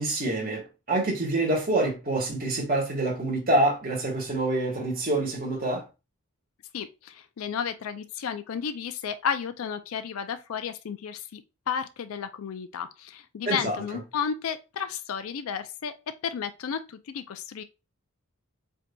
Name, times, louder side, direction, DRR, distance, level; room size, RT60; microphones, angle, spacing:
voice 1, 0.0-5.8 13.5-13.8, right 2 dB, 40° right, 1.5 m, -26 dB
voice 2, 6.7-11.4 11.7-15.9 16.2-17.6, left 7 dB, 75° left, 0.4 m, -32 dB
7.7 x 2.7 x 2.2 m
head